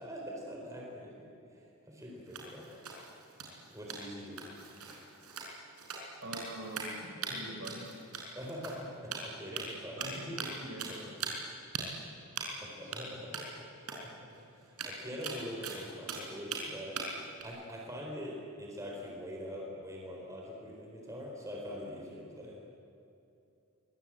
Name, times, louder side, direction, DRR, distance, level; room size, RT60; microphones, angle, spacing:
voice 1, 0.0-2.8 3.7-4.5 8.3-10.0 12.6-14.3 14.6-17.0 17.4-22.6, equal, 15° right, -1 dB, 4.1 m, -44 dB
sound 1, 2.3-7.0 7.2-7.3 7.6-8.8 9.1-9.7 10.0-10.5 10.8-11.5 11.7-11.8 12.4-12.6 12.9-13.0 13.3-13.5 13.9-14.0 14.3-14.4 14.6-16.6 17.0-17.4, right 6 dB, 90° right, 5.7 m, -40 dB
voice 2, 6.2-7.9 10.0-11.3 12.0-12.2 12.6-13.1, right 1 dB, 60° right, 2 dB, 5.4 m, -44 dB
24.0 x 23.0 x 8.9 m, 2.7 s
head